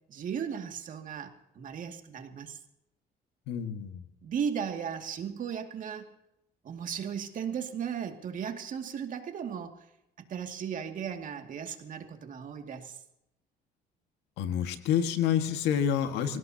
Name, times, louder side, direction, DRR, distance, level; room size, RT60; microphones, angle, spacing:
voice 1, 0.1-2.6 4.2-6.1 6.6-9.8 10.2-13.0, right 7 dB, 50° right, 5 dB, 2.3 m, -36 dB
voice 2, 3.5-4.0 14.4-16.4, left 9 dB, 90° left, 7 dB, 1.8 m, -28 dB
27.5 x 17.0 x 2.9 m, 0.86 s
cardioid pair, 110°, 17 cm